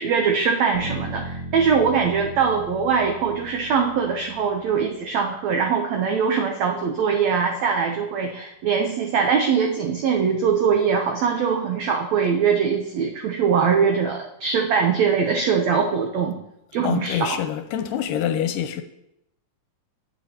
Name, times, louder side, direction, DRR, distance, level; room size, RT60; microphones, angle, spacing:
voice 1, 0.0-16.4 16.7-17.4, right 6 dB, 75° right, 1.6 m, -22 dB
sound 1, 0.7-4.8, right 1 dB, 25° left, 2.9 m, -37 dB
voice 2, 16.8-18.8, left 10 dB, 85° left, 2.3 m, -25 dB
18.0 x 6.1 x 2.9 m
omnidirectional pair, 4.0 m